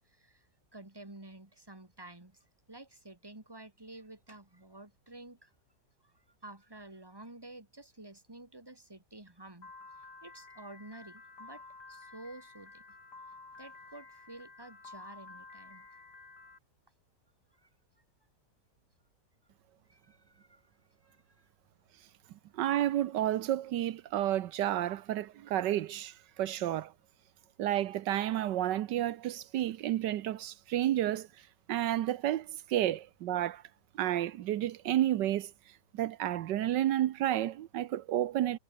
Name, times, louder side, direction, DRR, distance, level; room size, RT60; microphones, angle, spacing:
voice 1, 0.0-5.5 6.0-9.7 10.2-12.8 13.6-15.9 17.5-17.7 19.8-20.7 21.0-21.5, right 2 dB, 15° right, 2.9 m, -51 dB
Piano, 9.6-16.6, left 3 dB, 70° left, 4.5 m, -52 dB
voice 2, 22.5-26.9 27.6-31.3 31.7-33.6 33.9-35.5 35.9-38.6, right 12 dB, 85° right, 1.4 m, -31 dB
omnidirectional pair, 1.8 m